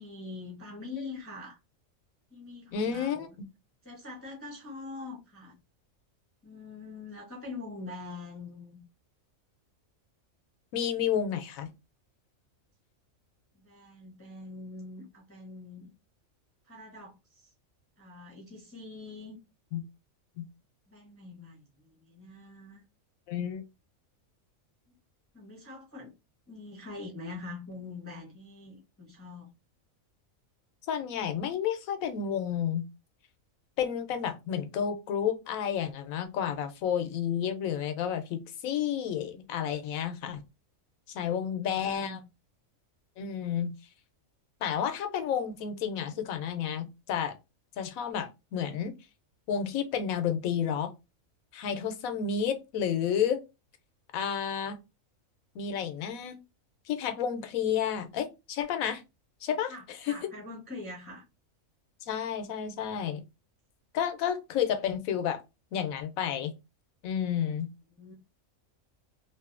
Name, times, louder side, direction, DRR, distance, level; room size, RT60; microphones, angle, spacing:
voice 1, 0.0-1.6 2.3-3.3 3.8-5.6 6.4-8.8 13.5-15.9 16.7-17.5 18.0-19.4 20.9-22.8 25.3-26.1 26.5-29.5 41.2-42.2 59.7-61.2 67.9-68.1, left 3 dB, 15° left, 0.5 m, -44 dB
voice 2, 2.7-3.3 10.7-11.7 19.7-19.8 20.4-20.5 23.3-23.6 30.9-32.9 33.8-40.4 41.1-42.2 43.2-43.7 44.6-47.3 47.8-48.9 49.5-50.9 51.5-53.4 54.1-54.8 55.5-56.4 56.9-59.0 59.4-60.2 62.0-63.2 63.9-65.4 65.7-66.5 67.0-67.7, left 8 dB, 90° left, 1.0 m, -31 dB
2.6 x 2.5 x 2.4 m
omnidirectional pair, 1.4 m